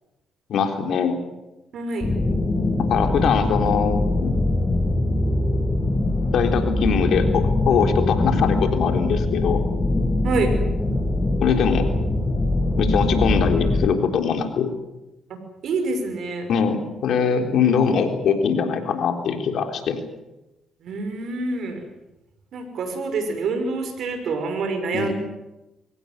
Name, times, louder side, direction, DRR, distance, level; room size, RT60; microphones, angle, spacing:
voice 1, 0.5-1.2 2.9-4.3 6.3-9.6 11.4-11.9 12.8-14.7 16.5-20.0 24.9-25.1, left 6 dB, 70° left, 6 dB, 3.9 m, -22 dB
voice 2, 1.7-2.1 10.2-10.5 15.3-15.4 15.6-16.5 20.8-21.8 22.5-25.1, right 3 dB, 65° right, 7 dB, 5.8 m, -26 dB
sound 1, 2.0-13.9, left 2 dB, 30° left, 7.2 m, -22 dB
23.5 x 18.0 x 9.7 m, 0.98 s
supercardioid pair, 55°, 0 cm